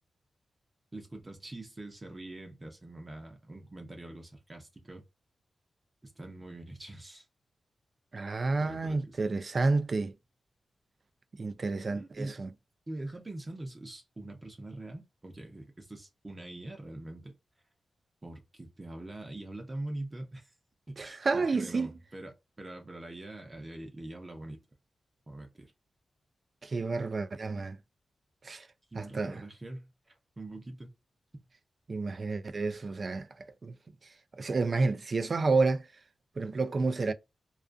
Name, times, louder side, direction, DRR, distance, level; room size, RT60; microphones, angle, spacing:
voice 1, 0.9-5.0 6.0-7.3 8.6-9.3 11.8-12.4 12.9-17.4 18.2-20.5 20.9-24.6 25.3-25.7 28.9-29.9 30.4-31.0, right 2 dB, 20° right, 0.7 m, -43 dB
voice 2, 8.1-10.1 11.4-12.5 21.0-21.9 26.6-27.8 28.4-28.7 29.0-29.4 31.9-33.7 34.4-35.8 36.4-37.1, right 3 dB, 40° right, 0.3 m, -30 dB
2.4 x 2.4 x 2.4 m
wide cardioid pair, 135°, 0 cm